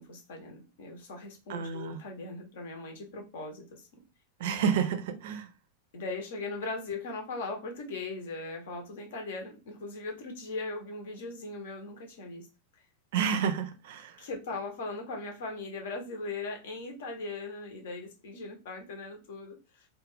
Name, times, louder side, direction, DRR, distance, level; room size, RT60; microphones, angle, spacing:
voice 1, 0.0-4.0 5.9-12.5 14.2-19.9, left 3 dB, 55° left, 0.8 m, -39 dB
voice 2, 1.5-2.0 4.4-5.5 13.1-14.1, right 7 dB, 55° right, 0.4 m, -30 dB
2.4 x 2.2 x 3.4 m
figure-of-eight pair, 90°, 0 cm